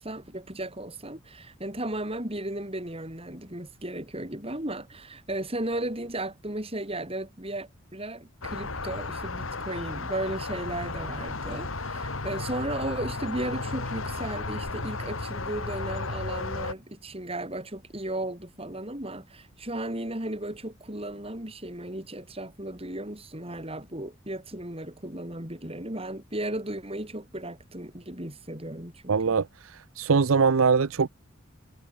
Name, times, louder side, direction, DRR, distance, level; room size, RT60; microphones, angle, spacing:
voice 1, 0.0-29.2, right 1 dB, 30° right, 4.6 m, -35 dB
sound 1, 8.4-16.7, left 3 dB, 75° left, 2.5 m, -34 dB
voice 2, 29.1-29.5 30.0-31.1, right 5 dB, 80° right, 0.6 m, -21 dB
head